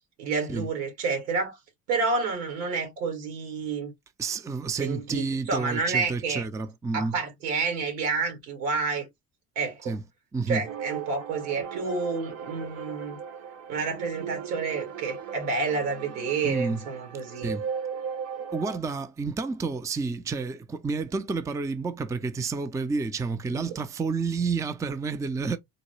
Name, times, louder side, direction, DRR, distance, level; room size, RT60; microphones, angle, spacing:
voice 1, 0.2-1.6 1.9-3.9 4.8-6.4 6.9-9.1 9.6-10.0 10.5-13.2 13.7-17.5 23.5-23.8, right 4 dB, 80° right, 1.9 m, -29 dB
voice 2, 4.2-7.1 9.8-10.0 10.3-10.6 16.4-16.8 17.4-17.6 18.5-25.6, right 4 dB, 10° right, 0.4 m, -30 dB
sound 1, 10.6-18.8, right 7 dB, 45° right, 0.8 m, -37 dB
3.8 x 2.2 x 3.0 m
hypercardioid pair, 70°, 36 cm